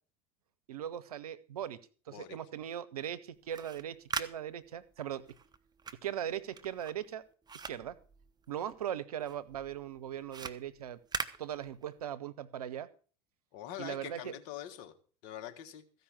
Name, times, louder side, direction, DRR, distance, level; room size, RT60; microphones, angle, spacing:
voice 1, 0.7-1.8 2.1-5.2 6.0-7.2 7.6-8.0 8.5-11.0 11.4-12.9 13.8-14.3, right 10 dB, 85° right, 15 dB, 0.8 m, -39 dB
sound 1, 3.4-8.9 9.2-12.1, right 5 dB, 20° right, 1.0 m, -43 dB
voice 2, 13.5-14.9 15.2-15.8, left 11 dB, 65° left, 8 dB, 1.6 m, -44 dB
15.0 x 5.5 x 7.3 m, 0.41 s
hypercardioid pair, 75°, 19 cm